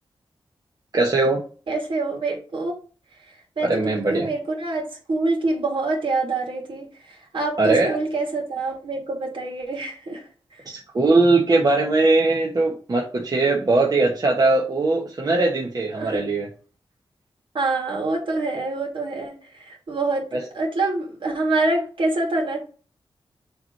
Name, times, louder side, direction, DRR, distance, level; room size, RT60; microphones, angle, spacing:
voice 1, 0.9-1.4 3.6-4.3 7.6-8.0 10.7-16.5 20.3-20.4, right 3 dB, 45° right, 1.2 m, -20 dB
voice 2, 1.7-2.7 3.6-10.2 16.0-16.2 17.5-20.2 20.5-22.6, right 2 dB, 70° right, 2.6 m, -26 dB
7.0 x 3.2 x 5.3 m
wide cardioid pair, 90°, 9 cm